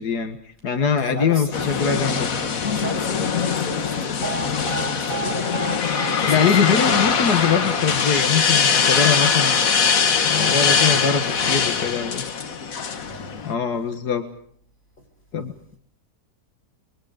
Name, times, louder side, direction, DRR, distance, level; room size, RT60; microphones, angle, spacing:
voice 1, 0.0-2.3 6.3-9.6 10.2-12.2 13.5-14.2 15.3-15.8, left 6 dB, 85° left, 7 dB, 2.1 m, -23 dB
voice 2, 1.0-7.1 7.6-7.9 10.4-11.9 13.0-13.4 15.0-15.1, left 1 dB, 30° left, 2 dB, 7.5 m, -35 dB
sound 1, 1.5-13.5, left 6 dB, 60° left, 1.7 m, -22 dB
Alarm, 4.2-12.3, right 7 dB, 60° right, 3.4 m, -36 dB
30.0 x 23.0 x 5.1 m, 0.62 s
omnidirectional pair, 1.7 m